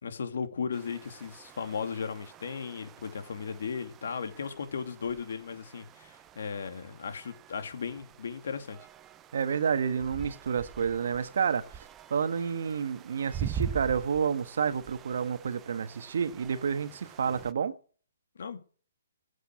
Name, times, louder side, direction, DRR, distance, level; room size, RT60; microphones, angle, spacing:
voice 1, 0.0-8.8 18.4-18.6, left 6 dB, 65° left, 2.4 m, -36 dB
sound 1, 0.7-17.5, right 8 dB, 15° right, 0.6 m, -44 dB
voice 2, 9.3-17.8, right 6 dB, 60° right, 1.3 m, -30 dB
16.0 x 8.1 x 6.3 m
hypercardioid pair, 165°, 0 cm